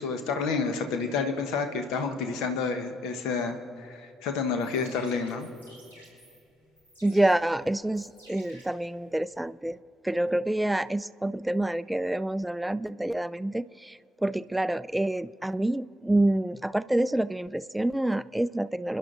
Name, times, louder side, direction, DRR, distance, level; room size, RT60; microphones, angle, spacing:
voice 1, 0.0-5.5, left 5 dB, 65° left, 7 dB, 1.0 m, -29 dB
sound 1, 4.4-9.4, right 1 dB, 80° left, 3.9 m, -54 dB
voice 2, 7.0-9.8 10.0-19.0, right 1 dB, 10° right, 17 dB, 0.4 m, -27 dB
29.5 x 11.0 x 2.5 m, 2.5 s
figure-of-eight pair, 45°, 0 cm